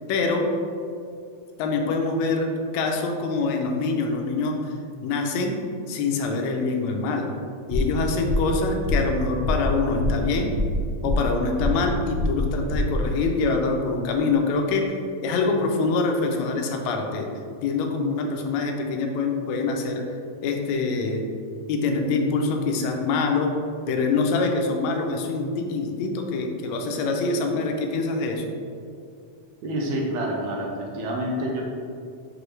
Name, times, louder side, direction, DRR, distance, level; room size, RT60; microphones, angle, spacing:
voice 1, 0.1-0.5 1.6-4.7 5.0-5.6 5.9-7.3 7.7-10.5 11.0-14.9 15.2-17.3 17.6-20.0 20.4-21.2 21.7-23.6 23.9-28.4, left 3 dB, 80° left, 2 dB, 1.8 m, -25 dB
sound 1, 7.7-8.0 8.3-8.5 8.9-9.1 9.4-9.7 10.0-10.3 10.5-11.3 11.6-11.9 12.2-12.5 12.7-13.0, left 2 dB, 55° right, 1.9 m, -25 dB
voice 2, 29.6-31.6, right 1 dB, 75° right, -1 dB, 1.8 m, -28 dB
6.1 x 5.0 x 3.2 m, 2.4 s
omnidirectional pair, 3.3 m